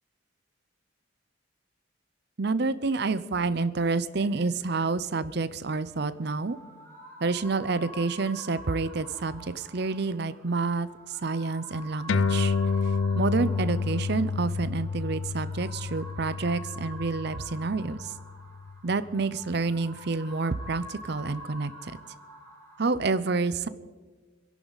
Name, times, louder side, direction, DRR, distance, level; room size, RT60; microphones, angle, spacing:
voice 1, 2.4-6.6 7.2-12.5 12.8-18.1 18.8-22.0 22.8-23.7, right 3 dB, 55° right, 14 dB, 0.6 m, -28 dB
sound 1, 5.9-22.9, right 1 dB, 15° left, 5.1 m, -47 dB
sound 2, 12.1-18.9, left 4 dB, 70° left, 0.5 m, -29 dB
27.0 x 11.0 x 4.1 m, 1.4 s
head